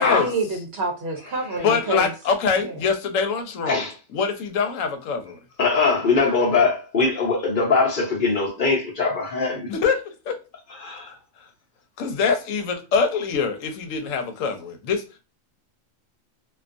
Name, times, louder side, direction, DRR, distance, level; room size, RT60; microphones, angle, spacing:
voice 1, 0.0-2.1 2.6-2.8, right 2 dB, 60° right, 0.8 m, -28 dB
voice 2, 1.6-3.8 4.1-5.4 9.7-9.9 11.1-11.2 12.0-15.2, left 5 dB, 90° left, 1.0 m, -24 dB
voice 3, 5.6-9.6 10.8-11.1, left 4 dB, 50° left, 0.8 m, -21 dB
2.4 x 2.3 x 2.4 m
omnidirectional pair, 1.3 m